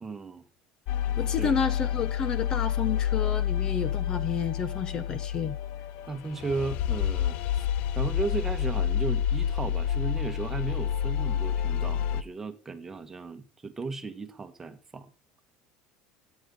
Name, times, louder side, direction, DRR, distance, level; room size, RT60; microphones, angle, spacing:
voice 1, 0.0-0.4 1.4-1.6 6.1-7.7 7.9-15.1, right 4 dB, 15° right, 1.5 m, -35 dB
sound 1, 0.9-12.2, left 9 dB, 60° left, 0.7 m, -29 dB
voice 2, 1.2-5.5, left 6 dB, 30° left, 1.1 m, -30 dB
14.0 x 9.6 x 3.9 m
cardioid pair, 145°, 2 cm